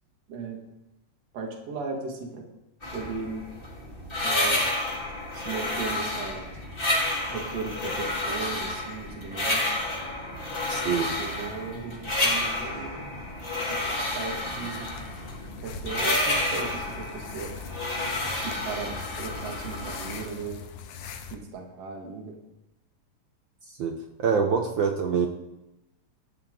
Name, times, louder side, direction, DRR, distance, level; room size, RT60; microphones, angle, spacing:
voice 1, 0.3-0.6 1.3-2.4 2.9-3.4 4.2-4.6 5.3-6.4 7.3-9.8 10.7-13.2 13.7-14.9 15.6-17.5 18.3-20.6 21.3-22.4, right 4 dB, 60° right, 1 dB, 3.0 m, -37 dB
sound 1, 2.8-20.3, left 1 dB, 20° left, 2.4 m, -30 dB
voice 2, 10.7-11.2 23.8-25.3, right 6 dB, 75° right, 4 dB, 1.1 m, -25 dB
sound 2, 14.4-21.4, left 6 dB, 85° left, 2.5 m, -42 dB
17.5 x 13.0 x 3.9 m, 0.93 s
omnidirectional pair, 3.5 m